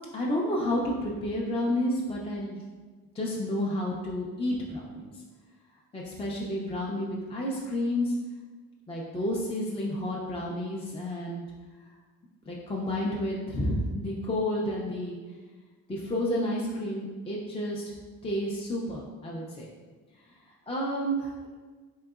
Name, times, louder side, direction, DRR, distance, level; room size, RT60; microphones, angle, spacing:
voice 1, 0.1-2.6 3.1-5.1 5.9-8.1 8.9-11.5 12.5-15.2 15.9-17.9 18.2-19.7 20.7-21.5, left 1 dB, 15° left, -3 dB, 0.4 m, -30 dB
3.8 x 3.6 x 2.3 m, 1.4 s
cardioid pair, 115°, 35 cm